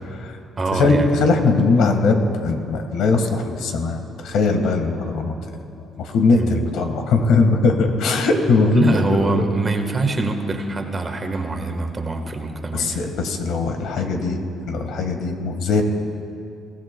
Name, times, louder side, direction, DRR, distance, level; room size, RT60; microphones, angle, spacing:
voice 1, 0.1-0.4 0.7-5.3 6.0-9.4 12.7-15.8, left 3 dB, 80° left, 5 dB, 1.5 m, -20 dB
voice 2, 0.6-1.1 6.3-6.7 8.7-13.0, right 3 dB, 25° right, 4 dB, 1.3 m, -24 dB
23.0 x 16.5 x 2.2 m, 2.5 s
cardioid pair, 120°, 0 cm